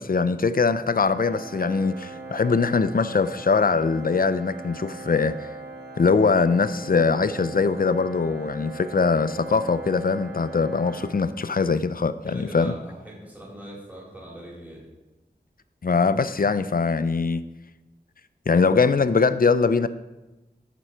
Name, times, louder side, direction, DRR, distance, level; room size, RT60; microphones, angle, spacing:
voice 1, 0.0-5.5 6.0-12.7 15.8-17.4 18.5-19.9, left 4 dB, 55° left, 13 dB, 0.5 m, -22 dB
Organ, 1.0-11.8, right 3 dB, 85° right, 1.2 m, -40 dB
voice 2, 12.3-14.8, right 1 dB, 10° right, -6 dB, 3.6 m, -41 dB
12.5 x 6.1 x 4.4 m, 1.1 s
wide cardioid pair, 45°, 18 cm